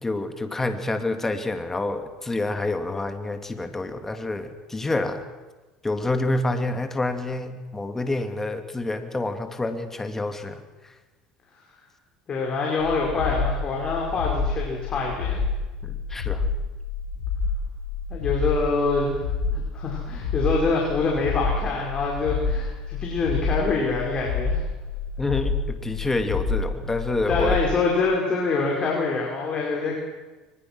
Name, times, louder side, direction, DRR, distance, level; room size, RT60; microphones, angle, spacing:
voice 1, 0.0-5.2 5.8-10.9 15.8-16.4 25.2-27.6, left 2 dB, 15° left, 7 dB, 2.6 m, -28 dB
voice 2, 12.3-15.4 18.1-19.2 19.5-24.6 27.3-30.0, left 3 dB, 40° left, -1 dB, 5.6 m, -25 dB
sound 1, 12.8-27.7, left 4 dB, 85° left, 4.5 m, -28 dB
23.5 x 21.5 x 6.3 m, 1.2 s
hypercardioid pair, 85°, 2 cm